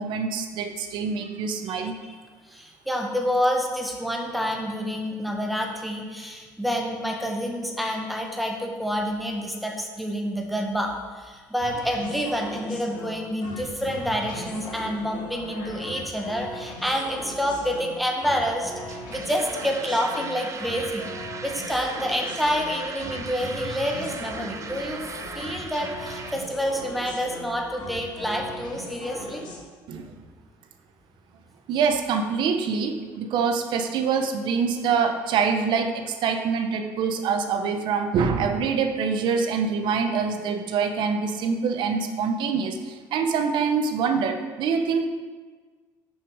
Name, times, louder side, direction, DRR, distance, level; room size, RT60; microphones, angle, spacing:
voice 1, 0.0-2.0 29.9-30.1 31.7-45.1, right 5 dB, 65° right, 7 dB, 0.8 m, -25 dB
voice 2, 2.4-21.1 21.4-25.0 25.3-29.4, equal, ahead, 1 dB, 1.4 m, -28 dB
sound 1, 11.6-29.6, left 1 dB, 65° left, 2.2 m, -39 dB
sound 2, 18.8-26.4, right 5 dB, 35° right, 0.6 m, -39 dB
6.3 x 5.1 x 4.8 m, 1.4 s
supercardioid pair, 80°, 9 cm